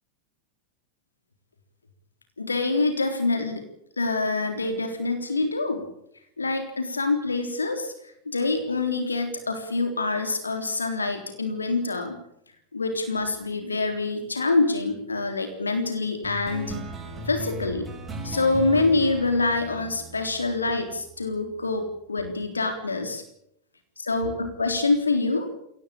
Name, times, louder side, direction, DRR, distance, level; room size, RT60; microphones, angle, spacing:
voice 1, 2.4-3.6 4.0-5.8 6.4-7.9 8.3-12.2 12.7-16.7 17.3-17.9 18.2-23.2 24.0-25.5, left 3 dB, 75° left, 6 dB, 3.6 m, -26 dB
sound 1, 16.2-21.2, right 1 dB, 20° right, 6.1 m, -37 dB
23.0 x 18.0 x 8.8 m, 0.75 s
figure-of-eight pair, 90°, 0 cm